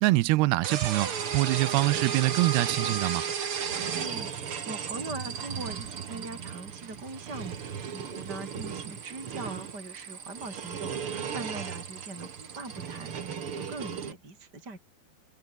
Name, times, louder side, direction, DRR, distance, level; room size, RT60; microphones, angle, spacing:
voice 1, 0.0-3.3, right 20 dB, 85° right, 2.7 m, -25 dB
sound 1, 0.6-14.1, right 7 dB, 40° right, 2.3 m, -35 dB
voice 2, 3.9-14.8, right 2 dB, 25° right, 6.7 m, -42 dB
omnidirectional pair, 4.7 m